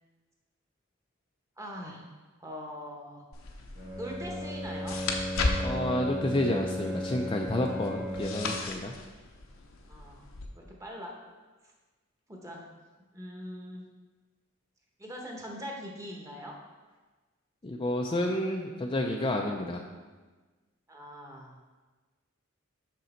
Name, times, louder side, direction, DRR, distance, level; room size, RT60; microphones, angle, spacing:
voice 1, 1.6-2.0 2.4-3.2 3.8-5.0 9.9-11.1 12.3-12.6 13.1-13.9 15.0-16.5 20.9-21.6, equal, 15° right, -1 dB, 1.1 m, -42 dB
sound 1, 3.3-10.5, left 2 dB, 75° left, 0.8 m, -36 dB
Bowed string instrument, 3.7-8.8, left 1 dB, 45° right, 1.9 m, -36 dB
voice 2, 5.6-8.9 17.6-19.8, left 1 dB, 25° left, 1 dB, 0.4 m, -30 dB
6.5 x 6.1 x 4.3 m, 1.3 s
head